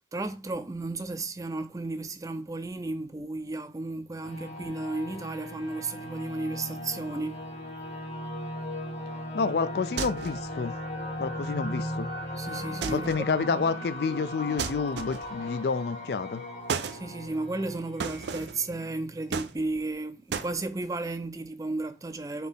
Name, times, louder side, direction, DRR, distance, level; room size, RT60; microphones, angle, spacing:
voice 1, 0.1-7.4 12.4-13.6 16.9-22.5, right 2 dB, 20° right, 0.4 m, -34 dB
sound 1, 4.2-19.6, left 1 dB, 40° left, 1.2 m, -38 dB
voice 2, 9.3-10.7 11.2-12.1 12.9-16.4, left 5 dB, 65° left, 0.4 m, -29 dB
sound 2, 10.0-10.5 12.8-13.3 14.6-15.4 16.7-17.0 18.0-18.6 19.3-19.9 20.3-20.5, right 6 dB, 80° right, 0.4 m, -34 dB
4.2 x 2.8 x 3.5 m
head